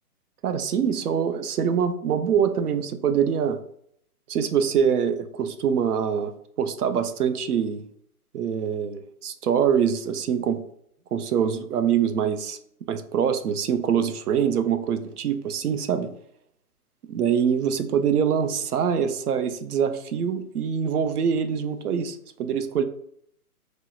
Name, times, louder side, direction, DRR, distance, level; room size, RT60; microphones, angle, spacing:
voice 1, 0.4-3.6 4.3-6.3 6.6-7.8 8.3-10.6 11.1-12.6 12.9-16.1 17.1-22.8, right 7 dB, 80° right, 9 dB, 0.6 m, -24 dB
4.3 x 2.1 x 2.3 m, 0.68 s
hypercardioid pair, 175°, 45 cm